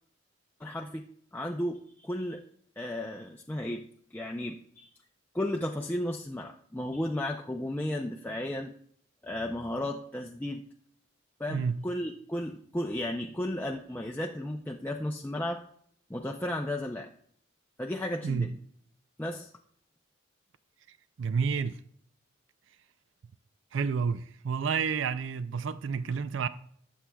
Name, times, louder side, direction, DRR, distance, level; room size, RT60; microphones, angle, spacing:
voice 1, 0.6-1.0 1.3-2.4 2.8-3.8 4.1-4.9 5.3-8.7 9.2-10.6 11.4-15.6 16.1-17.1 17.8-18.5 19.2-19.5, left 1 dB, 10° left, 0.5 m, -34 dB
voice 2, 11.5-11.8 18.2-18.5 21.2-21.8 23.7-26.5, right 5 dB, 70° right, 0.4 m, -30 dB
20.5 x 7.5 x 2.3 m
head